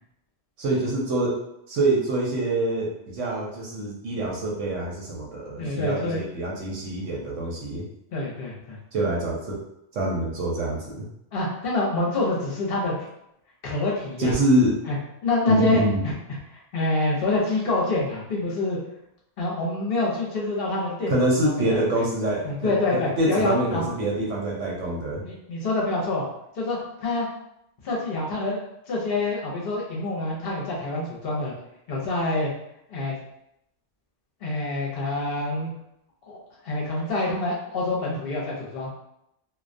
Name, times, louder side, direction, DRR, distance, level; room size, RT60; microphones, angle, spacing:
voice 1, 0.6-1.4 1.7-7.8 8.9-9.6 9.9-11.0 14.2-14.8 15.5-16.0 21.1-25.2, right 1 dB, 90° right, -3 dB, 1.0 m, -25 dB
voice 2, 5.6-6.2 8.1-8.8 11.3-12.9 13.6-14.4 14.9-15.0 15.2-16.1 16.5-18.8 19.4-21.1 21.4-21.8 22.4-23.8 25.2-26.2 26.5-27.3 27.8-31.5 31.9-32.5 32.9-33.2 34.4-35.7 36.3-36.4 36.6-38.9, left 2 dB, 60° left, -4 dB, 0.7 m, -26 dB
2.3 x 2.1 x 2.5 m, 0.79 s
omnidirectional pair, 1.2 m